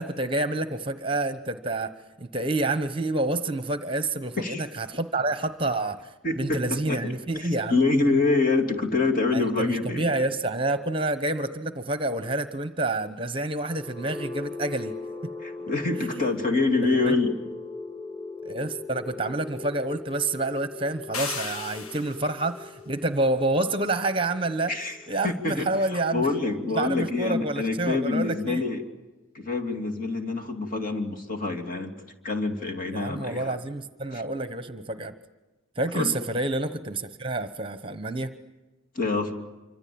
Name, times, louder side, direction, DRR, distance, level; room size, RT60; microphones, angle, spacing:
voice 1, 0.0-7.8 9.3-14.9 15.2-15.3 16.0-16.3 16.9-17.1 18.4-24.7 25.1-26.3 26.7-28.7 32.9-35.1 35.8-38.3, right 2 dB, 25° right, 10 dB, 1.1 m, -28 dB
voice 2, 6.2-6.6 6.9-7.0 7.4-10.0 15.4-17.3 24.7-25.0 25.2-28.8 29.3-31.9 32.2-33.5 34.1-34.2 35.9-36.2 38.9-39.3, left 3 dB, 40° left, 2 dB, 2.9 m, -26 dB
sound 1, 13.6-27.5, left 3 dB, 15° left, 2.7 m, -40 dB
sound 2, 21.1-22.4, left 5 dB, 85° left, 1.6 m, -34 dB
26.5 x 25.5 x 8.8 m, 1.1 s
head